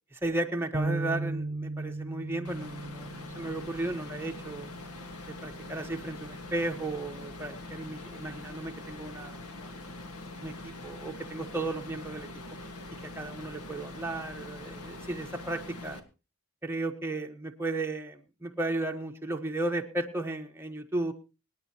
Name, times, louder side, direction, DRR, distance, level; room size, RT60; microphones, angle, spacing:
voice 1, 0.1-4.7 5.3-9.7 10.4-12.3 13.2-16.0 16.6-21.1, right 2 dB, 10° right, 3 dB, 1.3 m, -34 dB
sound 1, 0.7-5.0 5.5-5.7 6.6-7.0, right 2 dB, 35° right, 0.6 m, -37 dB
sound 2, 2.4-16.0, left 2 dB, 80° left, 1.7 m, -43 dB
25.5 x 9.6 x 3.0 m, 0.31 s
head